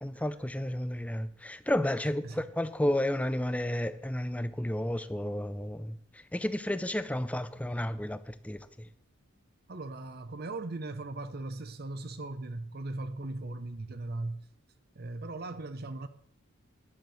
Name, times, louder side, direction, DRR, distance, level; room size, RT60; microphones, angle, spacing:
voice 1, 0.0-6.0 6.3-8.9, left 1 dB, 5° left, 0.5 m, -32 dB
voice 2, 9.7-14.4 14.9-16.1, right 2 dB, 45° right, 0.7 m, -38 dB
11.0 x 6.8 x 7.5 m
head